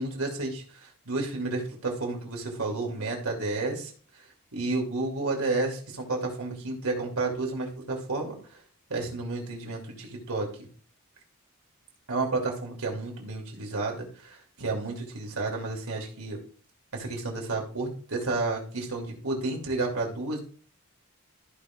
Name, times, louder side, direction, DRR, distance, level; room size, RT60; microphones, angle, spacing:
voice 1, 0.0-3.9 4.5-8.6 8.9-10.7 12.1-16.4 16.9-20.4, right 3 dB, 80° right, 0 dB, 2.7 m, -31 dB
14.5 x 5.5 x 2.4 m, 0.42 s
head